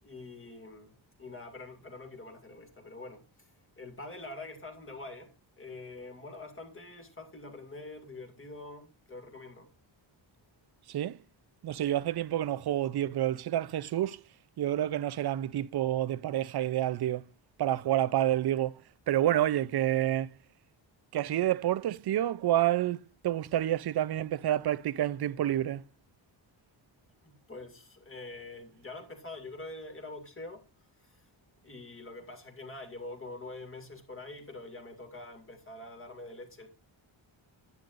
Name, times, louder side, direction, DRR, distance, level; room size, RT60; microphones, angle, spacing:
voice 1, 0.0-9.7 27.2-30.6 31.0-31.3 31.6-36.7, left 2 dB, 25° left, 2.2 m, -45 dB
voice 2, 10.9-11.2 11.6-14.2 14.6-17.3 17.6-18.8 19.1-20.4 21.1-25.9, right 12 dB, 55° right, 0.5 m, -29 dB
10.5 x 9.6 x 2.5 m
wide cardioid pair, 135°, 48 cm